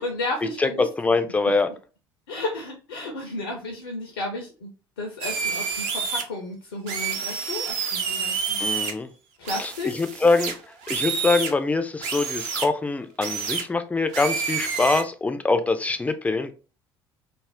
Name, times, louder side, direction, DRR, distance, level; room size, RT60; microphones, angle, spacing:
voice 1, 0.0-0.8 2.3-4.7 5.0-8.6 9.4-9.9, left 2 dB, 70° left, 0.5 m, -33 dB
voice 2, 0.6-1.7 8.6-9.1 9.6-10.5 10.9-16.5, left 3 dB, 10° left, 0.3 m, -24 dB
sound 1, 5.2-6.2 6.9-8.9 9.4-11.5 12.0-12.7 13.2-13.6 14.1-15.0, right 6 dB, 55° right, 0.5 m, -28 dB
2.4 x 2.0 x 3.4 m
figure-of-eight pair, 60°, 13 cm